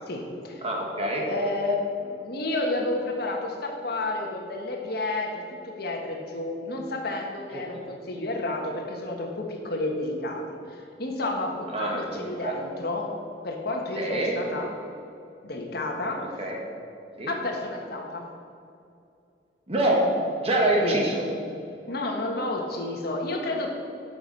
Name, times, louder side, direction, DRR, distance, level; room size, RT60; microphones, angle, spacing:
voice 1, 0.1-0.6 1.3-13.1 13.4-14.7 15.4-16.2 17.3-18.3 20.8-21.0 21.9-23.7, left 2 dB, 60° left, 1 dB, 1.5 m, -31 dB
voice 2, 0.6-1.3 7.5-7.6 11.7-12.5 14.0-14.4 16.2-16.6 17.2-17.3 19.7-20.0 20.4-21.2, right 1 dB, 35° right, -1 dB, 1.8 m, -26 dB
12.0 x 7.1 x 5.4 m, 2.5 s
head